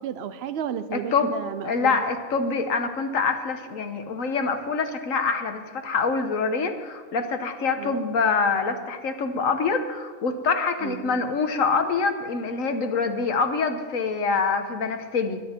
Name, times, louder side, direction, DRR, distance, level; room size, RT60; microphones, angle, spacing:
voice 1, 0.0-2.0 7.8-8.0 10.8-11.2, right 8 dB, 55° right, 11 dB, 0.9 m, -33 dB
voice 2, 0.9-1.3 1.6-15.4, left 4 dB, 70° left, 7 dB, 1.5 m, -25 dB
21.0 x 9.7 x 4.5 m, 1.5 s
omnidirectional pair, 1.5 m